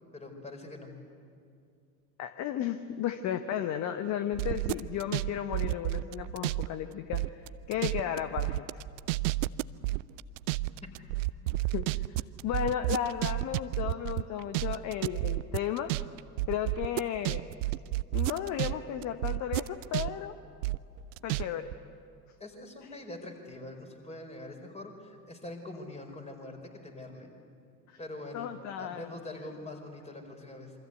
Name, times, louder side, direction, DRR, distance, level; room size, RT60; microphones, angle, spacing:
voice 1, 0.1-0.9 22.4-27.3 28.0-28.5 28.8-30.7, left 2 dB, 15° left, 4 dB, 5.0 m, -44 dB
voice 2, 2.2-7.4 7.7-8.8 11.7-15.9 16.5-17.4 18.1-20.3 21.2-21.7 27.9-28.0 28.3-29.2, left 10 dB, 35° left, 10 dB, 1.2 m, -34 dB
sound 1, 4.3-6.7 6.9-18.7 19.0-21.4 21.7-21.8, right 19 dB, 50° right, 0.6 m, -31 dB
27.5 x 24.5 x 8.2 m, 2.4 s
figure-of-eight pair, 75°, 48 cm